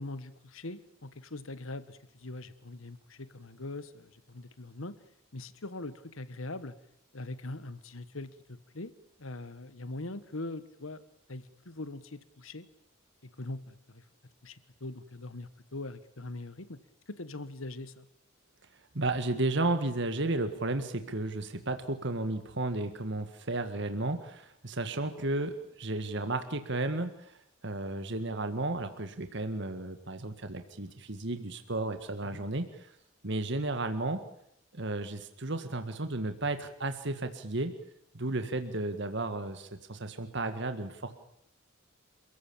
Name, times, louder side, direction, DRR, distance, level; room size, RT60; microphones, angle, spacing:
voice 1, 0.0-5.0 5.3-6.7 7.1-8.9 9.2-11.0 11.3-12.6 13.2-14.0 14.4-16.8 17.1-18.1 32.2-32.4, left 2 dB, 80° left, 14 dB, 1.5 m, -42 dB
voice 2, 18.9-27.4 27.6-32.9 33.2-34.2 34.7-37.8 38.1-41.1, right 2 dB, 60° right, 8 dB, 1.9 m, -33 dB
28.5 x 15.5 x 8.8 m, 0.74 s
head